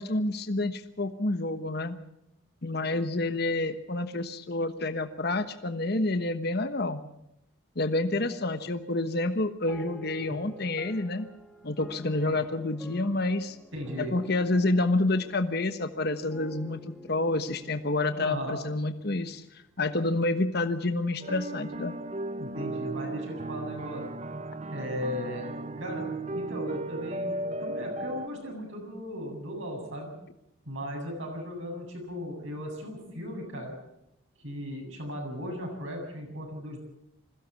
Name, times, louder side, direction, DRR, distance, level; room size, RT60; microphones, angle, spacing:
voice 1, 0.0-2.0 2.6-7.0 7.8-11.3 11.6-13.6 14.0-19.4 19.8-21.9, left 2 dB, 50° left, 9 dB, 1.2 m, -28 dB
sound 1, 9.7-19.4, left 1 dB, 5° left, 1.3 m, -50 dB
voice 2, 13.7-14.2 18.1-18.6 22.4-24.0 24.7-30.1 30.7-33.7 34.4-36.8, equal, 70° right, 1 dB, 7.8 m, -37 dB
sound 2, 21.2-28.3, right 2 dB, 30° right, 0.7 m, -35 dB
21.5 x 16.0 x 8.3 m, 0.83 s
head